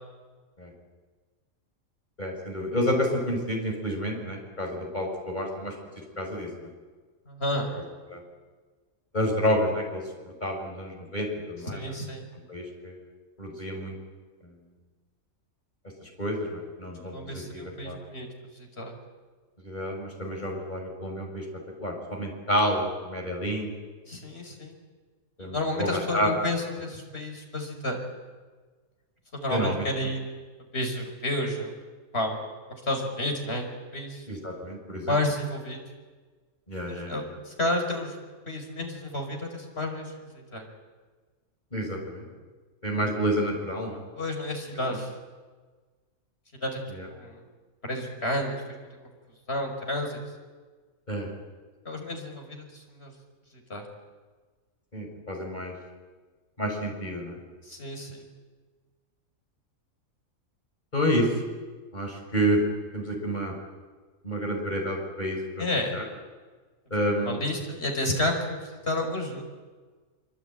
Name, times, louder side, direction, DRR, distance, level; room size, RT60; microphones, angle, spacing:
voice 1, 2.2-5.7 6.2-6.5 7.7-7.8 8.1-8.2 9.1-10.0 10.4-11.8 12.5-13.0 13.4-14.0 14.4-14.5 16.0-18.0 19.6-21.4 21.8-23.7 25.4-26.3 29.5-30.1 34.3-35.2 36.7-37.3 41.7-42.3 42.8-44.0 44.9-45.0 46.9-47.1 51.1-51.3 54.9-55.7 56.6-57.4 60.9-61.3 61.9-62.6 62.9-63.5 64.2-65.7 65.9-66.0 66.9-67.4, equal, 30° left, 1 dB, 6.8 m, -29 dB
voice 2, 7.3-7.7 11.7-12.3 17.1-18.3 18.6-18.9 24.1-24.8 25.4-28.0 29.3-30.4 30.7-31.7 32.1-32.4 32.7-34.2 35.1-35.8 36.9-38.2 38.5-40.1 40.5-40.6 44.1-45.1 46.6-47.4 47.8-48.9 49.5-50.2 51.9-53.1 53.7-53.8 57.7-58.3 65.6-66.0 67.2-69.4, left 1 dB, 45° left, 3 dB, 5.7 m, -31 dB
25.5 x 25.5 x 9.2 m, 1.4 s
omnidirectional pair, 1.4 m